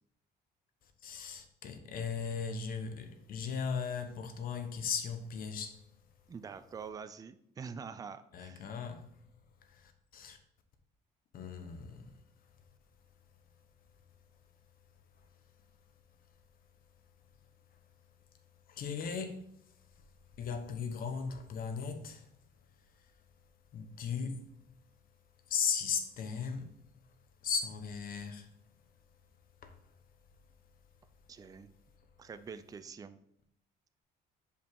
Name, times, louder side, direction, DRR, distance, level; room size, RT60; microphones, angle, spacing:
voice 1, 1.0-5.8 8.3-9.1 9.7-10.4 11.3-12.1 18.7-19.4 20.4-22.3 23.7-24.5 25.5-26.7 27.4-28.5 29.6-29.7, left 6 dB, 60° left, 1.0 m, -37 dB
voice 2, 6.3-8.6 31.3-31.7 32.2-33.2, right 6 dB, 20° right, 0.4 m, -45 dB
5.3 x 4.9 x 4.7 m
cardioid pair, 110°, 17 cm